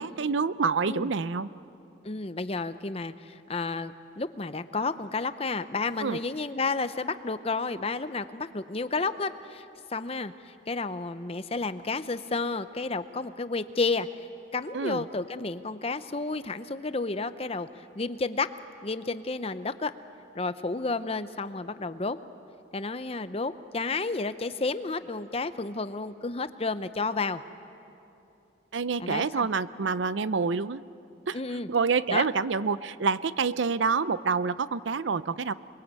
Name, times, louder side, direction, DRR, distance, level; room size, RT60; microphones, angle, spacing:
voice 1, 0.0-1.5 6.0-6.2 14.7-15.1 28.7-30.8 31.3-31.4 31.7-35.5, right 5 dB, 75° right, 15 dB, 0.6 m, -27 dB
voice 2, 2.0-9.6 9.9-14.1 14.5-18.5 18.8-19.9 20.3-22.2 22.7-27.4 29.0-29.5 31.3-31.7 32.1-32.3, left 3 dB, 30° left, 12 dB, 0.7 m, -31 dB
28.0 x 22.0 x 8.3 m, 2.9 s
head